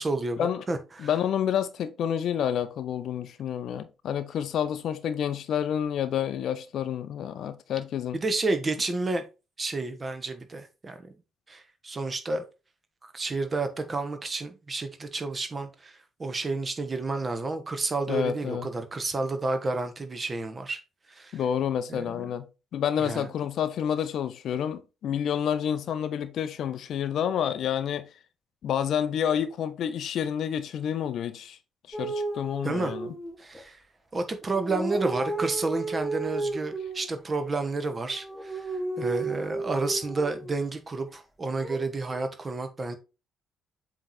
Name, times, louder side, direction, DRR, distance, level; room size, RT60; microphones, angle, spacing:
voice 1, 0.0-1.1 8.1-9.2 9.6-11.1 11.5-12.4 13.0-20.8 21.1-21.4 21.9-22.3 23.0-23.3 32.6-32.9 33.4-33.8 34.1-38.7 39.0-43.0, right 3 dB, 30° right, 1.3 m, -30 dB
voice 2, 1.0-8.2 18.1-18.7 21.3-22.4 22.7-28.1 28.6-31.6 31.9-33.1, left 9 dB, 55° left, 0.6 m, -29 dB
sound 1, 31.9-33.6 34.4-37.1 37.9-40.5 41.6-42.2, right 3 dB, ahead, 1.6 m, -33 dB
7.7 x 3.3 x 4.2 m
figure-of-eight pair, 45°, 0 cm